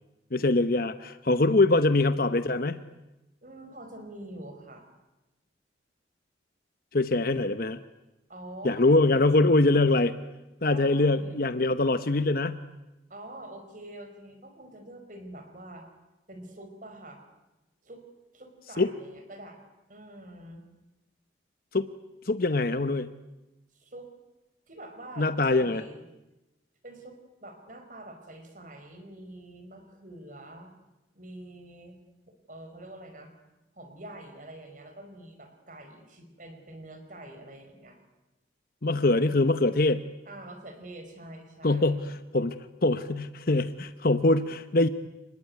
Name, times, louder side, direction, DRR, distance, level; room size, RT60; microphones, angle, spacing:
voice 1, 0.3-2.8 6.9-7.8 8.6-10.1 10.6-12.6 18.8-18.9 21.7-21.9 22.3-23.1 25.2-25.8 38.8-40.0 41.6-42.6 42.8-44.9, left 2 dB, 50° left, 11 dB, 0.9 m, -23 dB
voice 2, 3.4-4.9 8.3-9.2 10.6-11.3 13.1-15.8 16.3-17.2 17.8-18.0 18.3-19.6 19.9-20.6 23.7-24.1 24.7-26.0 26.8-30.7 31.1-32.0 32.3-33.3 33.7-38.0 40.2-42.0, right 1 dB, 45° right, 6 dB, 4.9 m, -45 dB
28.5 x 20.5 x 9.5 m, 0.99 s
head